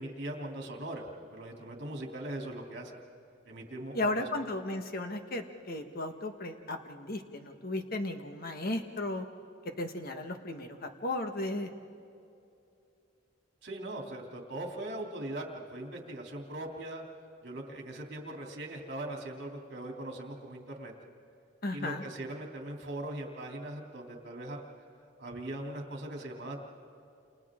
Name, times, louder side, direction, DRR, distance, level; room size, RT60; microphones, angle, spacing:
voice 1, 0.0-3.0 3.4-4.3 13.6-17.0 17.4-20.9 21.7-24.7 25.2-26.6, right 1 dB, 55° right, 0 dB, 2.9 m, -40 dB
voice 2, 3.9-9.3 9.8-11.7 21.6-22.0, left 2 dB, 50° left, 5 dB, 1.4 m, -35 dB
30.0 x 28.5 x 3.7 m, 2.6 s
head